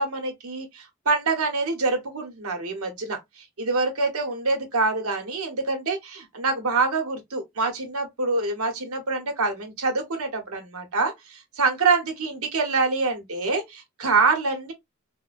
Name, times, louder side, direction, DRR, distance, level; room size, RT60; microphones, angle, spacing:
voice 1, 0.0-14.7, right 3 dB, 85° right, 1.1 m, -25 dB
3.4 x 2.2 x 2.4 m
head